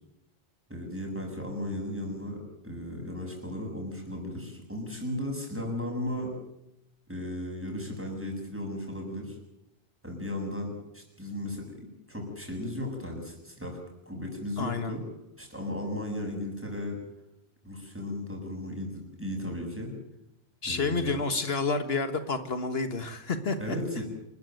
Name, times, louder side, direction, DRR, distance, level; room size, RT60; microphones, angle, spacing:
voice 1, 0.7-6.3 7.1-9.4 10.0-11.8 12.1-13.8 14.1-15.0 15.4-17.0 17.6-19.9 20.6-21.2 23.6-24.0, left 1 dB, 10° right, 1 dB, 7.4 m, -35 dB
voice 2, 14.6-14.9 20.6-23.8, left 4 dB, 75° left, 9 dB, 1.8 m, -29 dB
27.5 x 14.5 x 9.2 m, 0.85 s
omnidirectional pair, 1.1 m